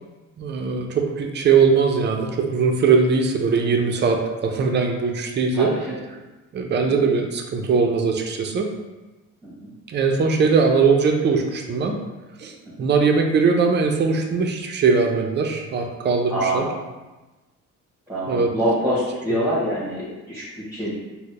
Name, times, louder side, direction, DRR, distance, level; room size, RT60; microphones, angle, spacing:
voice 1, 0.4-5.7 6.5-8.7 9.9-12.0 12.4-12.5 12.8-16.6 18.3-18.5, right 5 dB, 35° right, 3 dB, 0.5 m, -20 dB
voice 2, 5.5-6.0 9.4-9.7 12.8-12.9 16.3-16.8 18.1-20.9, right 1 dB, 5° right, -9 dB, 1.1 m, -25 dB
3.9 x 2.1 x 3.2 m, 1.1 s
cardioid pair, 90°, 30 cm